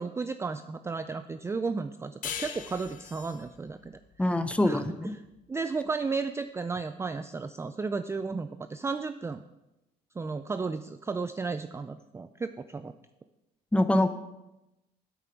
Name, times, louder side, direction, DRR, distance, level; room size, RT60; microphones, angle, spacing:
voice 1, 0.0-3.9 4.6-4.8 5.5-9.4 10.2-12.9, right 4 dB, 15° right, 10 dB, 0.4 m, -33 dB
sound 1, 2.2-5.4, left 8 dB, 50° left, 0.9 m, -41 dB
voice 2, 4.2-5.1 13.7-14.1, left 1 dB, 5° left, 10 dB, 0.8 m, -24 dB
9.0 x 8.5 x 5.8 m, 0.95 s
cardioid pair, 110°, 17 cm